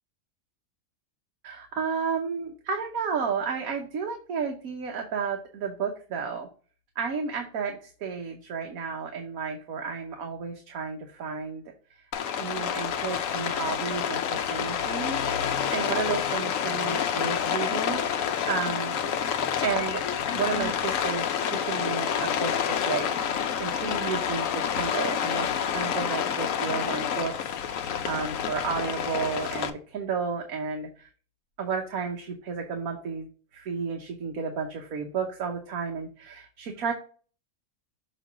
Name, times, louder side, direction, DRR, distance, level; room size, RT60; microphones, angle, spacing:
voice 1, 1.4-6.5 6.9-11.6 11.9-12.0 12.4-19.0 19.6-31.1 31.6-33.3 33.5-36.9, right 5 dB, 75° right, 2 dB, 1.4 m, -32 dB
Rain, 12.1-29.7, left 8 dB, 70° left, 1.0 m, -28 dB
6.4 x 3.0 x 5.8 m, 0.39 s
omnidirectional pair, 1.5 m